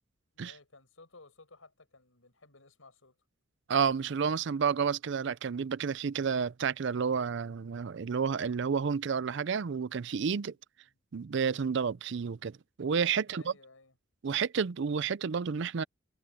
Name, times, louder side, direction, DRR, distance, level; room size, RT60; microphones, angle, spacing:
voice 1, 0.3-3.2 10.4-11.0 13.2-14.0, left 3 dB, 85° left, 5.3 m, -57 dB
voice 2, 3.7-10.5 11.1-13.5 14.2-15.8, right 6 dB, 60° right, 0.5 m, -30 dB
head